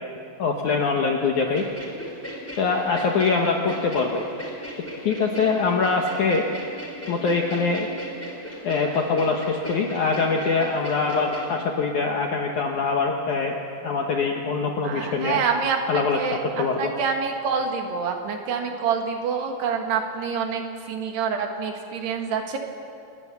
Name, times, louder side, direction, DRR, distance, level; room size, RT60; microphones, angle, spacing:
voice 1, 0.4-1.6 2.6-4.2 5.0-6.4 7.1-7.9 8.6-15.4 15.9-16.2 16.6-16.9, left 4 dB, 65° left, 1 dB, 2.1 m, -23 dB
sound 1, 1.5-11.5, equal, 5° left, 3.3 m, -37 dB
voice 2, 14.8-20.6 20.9-22.6, right 6 dB, 70° right, 3 dB, 3.9 m, -27 dB
28.5 x 20.0 x 7.1 m, 2.5 s
omnidirectional pair, 4.9 m